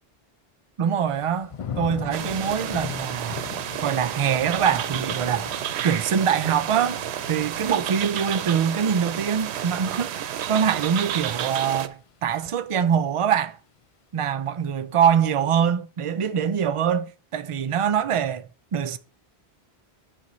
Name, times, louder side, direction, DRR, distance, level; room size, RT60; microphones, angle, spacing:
voice 1, 0.8-3.4 3.8-5.5 5.8-7.0 7.3-13.6 14.1-19.0, right 8 dB, 60° right, 0.3 m, -24 dB
Thunder / Rain, 1.1-12.0 12.4-12.9, left 7 dB, 45° left, 0.4 m, -40 dB
sound 1, 2.1-11.9, right 10 dB, 85° right, 0.8 m, -31 dB
9.7 x 5.4 x 3.0 m
omnidirectional pair, 1.1 m